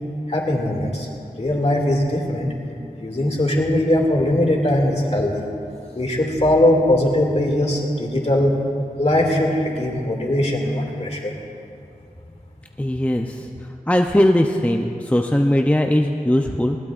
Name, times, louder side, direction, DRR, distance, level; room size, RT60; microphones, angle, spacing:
voice 1, 0.3-1.1 1.4-2.5 3.0-5.5 5.9-8.6 9.0-11.3, left 1 dB, 45° left, -1 dB, 2.4 m, -20 dB
voice 2, 12.8-13.5 13.9-16.8, left 1 dB, 10° left, 3 dB, 0.6 m, -19 dB
20.0 x 18.5 x 2.5 m, 2.6 s
wide cardioid pair, 55°, 15 cm